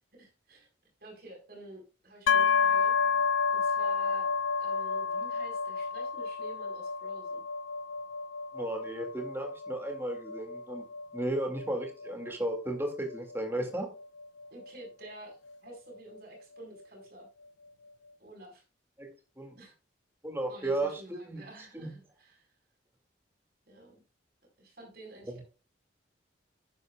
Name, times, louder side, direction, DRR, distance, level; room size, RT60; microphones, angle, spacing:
voice 1, 0.1-0.7 1.0-4.3 4.6-7.4 14.5-17.3 18.2-18.6 19.6-19.8 20.5-22.6 23.7-24.0 24.6-25.4, right 1 dB, 50° right, 1 dB, 4.6 m, -50 dB
sound 1, 2.3-16.0, left 5 dB, 85° left, 0.4 m, -31 dB
voice 2, 8.5-10.8 11.1-13.9 19.0-19.1 19.4-19.5 20.2-21.4 21.7-21.9 25.3-25.4, right 1 dB, 10° right, 3 dB, 2.2 m, -34 dB
11.5 x 10.0 x 2.3 m, 0.32 s
head